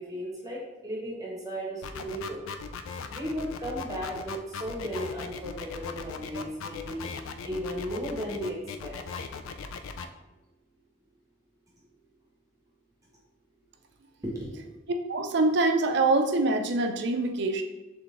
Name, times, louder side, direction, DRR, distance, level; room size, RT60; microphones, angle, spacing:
voice 1, 0.0-2.4 3.1-9.0 14.2-14.7, equal, 15° right, -4 dB, 0.9 m, -35 dB
sound 1, 1.8-10.1, left 5 dB, 85° left, 0.3 m, -38 dB
voice 2, 15.1-17.6, right 2 dB, 55° right, 6 dB, 0.4 m, -24 dB
3.9 x 3.2 x 3.6 m, 1.1 s
head